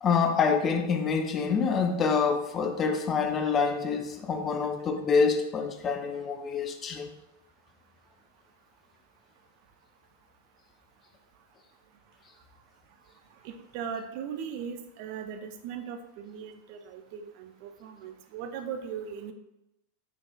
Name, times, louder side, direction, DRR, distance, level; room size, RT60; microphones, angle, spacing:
voice 1, 0.0-7.1, left 5 dB, 25° left, 6 dB, 0.4 m, -26 dB
voice 2, 13.4-19.3, right 7 dB, 45° right, 7 dB, 0.4 m, -38 dB
4.6 x 3.8 x 2.2 m, 0.89 s
figure-of-eight pair, 90°, 0 cm